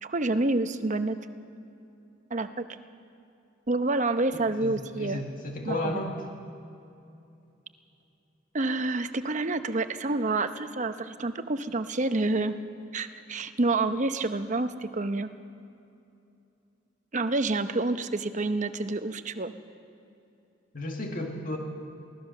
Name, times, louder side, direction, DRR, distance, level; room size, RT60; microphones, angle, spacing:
voice 1, 0.0-1.2 2.3-2.6 3.7-5.2 5.7-5.8 8.5-12.5 12.9-15.3 17.1-19.5, right 2 dB, 40° right, 10 dB, 0.8 m, -28 dB
voice 2, 4.3-4.7 5.0-6.1 20.7-21.6, left 1 dB, 45° left, 1 dB, 2.0 m, -33 dB
23.5 x 17.0 x 6.6 m, 2.7 s
head